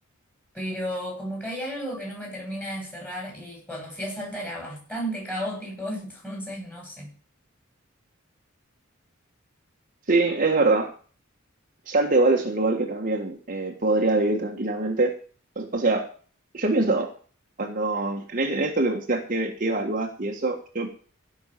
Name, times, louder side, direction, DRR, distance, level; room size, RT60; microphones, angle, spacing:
voice 1, 0.5-7.1, equal, 10° left, 7.7 m, -33 dB
voice 2, 10.1-10.9 11.9-15.2 15.5-16.1 16.5-17.1 17.6-20.9, right 2 dB, 40° right, 1.6 m, -24 dB
16.0 x 6.5 x 6.8 m
head